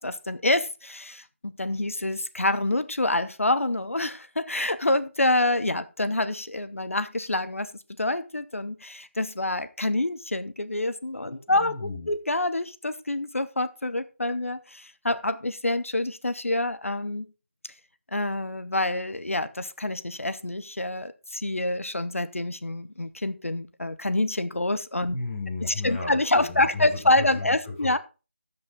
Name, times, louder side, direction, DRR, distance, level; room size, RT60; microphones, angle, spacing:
voice 1, 0.0-7.7 8.0-17.3 18.1-25.2 25.8-28.0, left 2 dB, 85° left, 1.0 m, -27 dB
voice 2, 11.3-12.1 25.1-28.0, left 3 dB, 20° left, 5.7 m, -35 dB
13.0 x 5.6 x 3.9 m
figure-of-eight pair, 165°, 7 cm